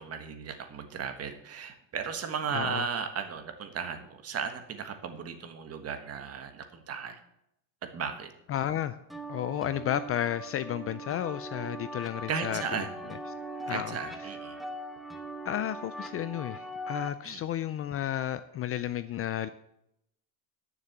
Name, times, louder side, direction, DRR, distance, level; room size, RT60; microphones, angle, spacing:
voice 1, 0.0-7.2 7.8-8.3 12.3-13.0 13.7-14.6 17.2-17.4, right 6 dB, 35° right, 7 dB, 1.5 m, -35 dB
voice 2, 2.5-2.8 8.5-9.0 9.3-12.6 13.7-14.0 15.4-19.5, left 11 dB, 35° left, 14 dB, 0.4 m, -32 dB
sound 1, 9.1-17.1, right 1 dB, ahead, 1.0 m, -40 dB
10.5 x 6.8 x 7.1 m, 0.78 s
cardioid pair, 135°, 42 cm